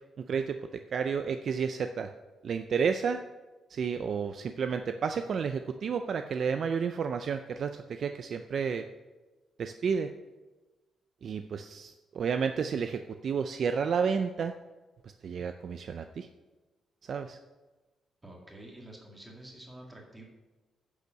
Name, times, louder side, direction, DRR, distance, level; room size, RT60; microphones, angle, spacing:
voice 1, 0.3-2.1 2.4-3.2 3.7-8.9 9.6-10.1 11.2-14.5 15.2-16.3 17.1-17.4, right 6 dB, 45° right, 8 dB, 0.4 m, -31 dB
voice 2, 18.2-20.2, right 1 dB, 10° right, 0 dB, 2.0 m, -49 dB
9.9 x 6.8 x 6.3 m, 1.2 s
cardioid pair, 170°, 0 cm